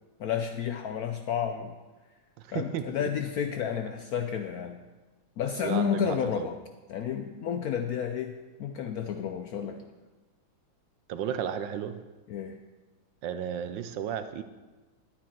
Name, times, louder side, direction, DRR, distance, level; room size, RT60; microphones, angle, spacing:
voice 1, 0.2-1.8 2.5-4.8 5.4-6.6 6.9-9.9 12.3-12.6, left 8 dB, 80° left, 6 dB, 0.8 m, -31 dB
voice 2, 2.4-3.1 5.6-6.5 11.1-12.0 13.2-14.4, right 9 dB, 70° right, 10 dB, 1.3 m, -33 dB
11.5 x 9.5 x 4.5 m, 1.2 s
omnidirectional pair, 2.2 m